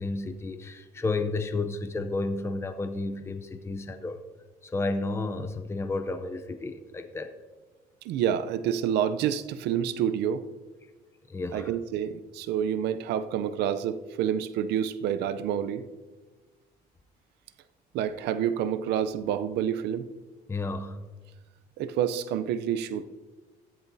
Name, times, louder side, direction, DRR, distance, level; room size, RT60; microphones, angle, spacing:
voice 1, 0.0-4.2 4.6-7.3 11.3-11.7 20.5-21.1, left 3 dB, 15° left, 8 dB, 0.6 m, -32 dB
voice 2, 8.0-10.4 11.5-15.9 17.9-20.1 21.8-23.0, right 9 dB, 80° right, 12 dB, 0.6 m, -28 dB
14.0 x 10.5 x 2.7 m, 1.3 s
cardioid pair, 110°, 17 cm